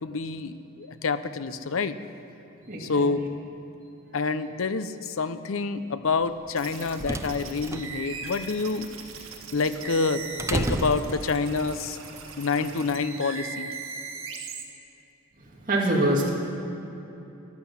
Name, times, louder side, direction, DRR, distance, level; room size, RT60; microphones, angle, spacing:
voice 1, 0.0-2.0 2.8-3.3 4.1-8.9 9.5-12.0 12.4-13.7, left 4 dB, 75° left, 12 dB, 0.7 m, -27 dB
voice 2, 2.7-3.0 15.6-16.3, right 1 dB, 40° right, -3 dB, 2.4 m, -24 dB
sound 1, 6.5-11.8, right 1 dB, 15° right, 0.5 m, -33 dB
sound 2, 6.5-14.6, right 5 dB, 75° right, 1.7 m, -39 dB
14.0 x 12.0 x 7.3 m, 2.9 s
head